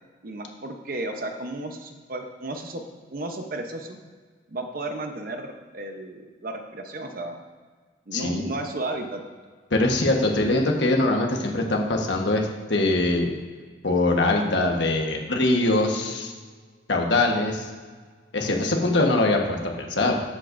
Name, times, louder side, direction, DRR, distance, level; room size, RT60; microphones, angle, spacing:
voice 1, 0.2-2.8 3.1-4.0 4.5-7.4 8.1-9.2, right 2 dB, 50° right, 5 dB, 0.9 m, -33 dB
voice 2, 8.1-8.4 9.7-13.3 13.8-16.3 16.9-17.7 18.3-20.2, left 2 dB, 70° left, 1 dB, 1.3 m, -22 dB
12.5 x 8.2 x 2.6 m, 1.5 s
head